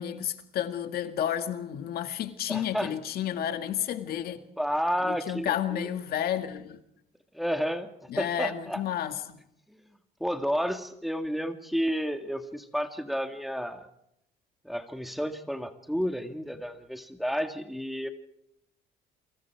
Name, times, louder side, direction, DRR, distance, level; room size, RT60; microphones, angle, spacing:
voice 1, 0.0-4.4 5.1-6.8 8.1-9.4, left 10 dB, 65° left, 2.0 m, -31 dB
voice 2, 2.5-2.9 4.6-5.9 7.3-7.9 8.2-8.8 9.7-9.8 10.2-13.9 14.6-18.1, equal, ahead, 2.0 m, -31 dB
29.0 x 24.5 x 4.8 m
cardioid pair, 110°, 17 cm